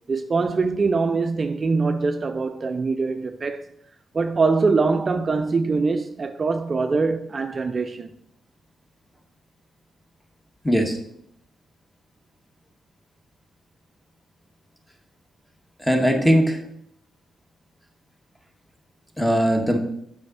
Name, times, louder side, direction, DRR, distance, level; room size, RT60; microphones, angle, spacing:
voice 1, 0.1-3.6 4.1-8.1, right 4 dB, 45° right, 0.4 m, -23 dB
voice 2, 10.6-11.0 15.8-16.6 19.2-19.8, equal, 10° left, 1.6 m, -19 dB
7.6 x 5.0 x 4.1 m
hypercardioid pair, 45°, 0 cm